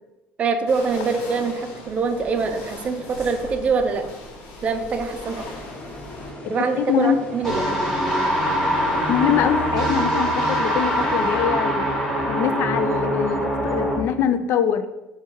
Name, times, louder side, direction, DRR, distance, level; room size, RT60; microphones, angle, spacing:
voice 1, 0.4-4.1 4.6-5.5 6.5-7.7, right 4 dB, 35° right, 7 dB, 0.4 m, -24 dB
sound 1, 0.7-6.3, left 2 dB, 80° left, 1.1 m, -39 dB
sound 2, 5.3-12.0, left 1 dB, 45° left, 1.0 m, -39 dB
voice 2, 6.4-7.2 9.1-11.9 12.3-14.8, left 9 dB, 60° left, 10 dB, 0.3 m, -23 dB
sound 3, 7.4-14.0, equal, 5° left, 1.2 m, -23 dB
4.4 x 2.3 x 4.5 m, 1.0 s
cardioid pair, 135°, 4 cm